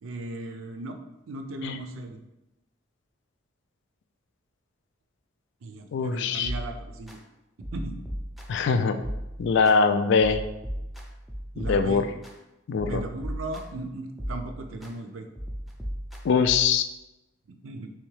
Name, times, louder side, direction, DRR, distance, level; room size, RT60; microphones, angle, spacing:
voice 1, 0.0-1.0 1.3-2.2 5.6-7.2 7.7-8.0 11.5-12.0 12.9-15.3 17.5-17.9, right 2 dB, 90° right, 5 dB, 0.5 m, -37 dB
voice 2, 5.9-6.5 8.5-9.0 9.4-10.4 11.6-12.0 12.7-13.0 16.2-16.9, left 5 dB, 65° left, 9 dB, 0.3 m, -22 dB
sound 1, 6.4-7.2 7.6-8.7 9.0-9.8 10.2-12.3 12.8-13.8 14.2-14.9 15.4-16.8, equal, ahead, 0.4 m, -36 dB
3.4 x 3.1 x 3.2 m, 0.94 s
head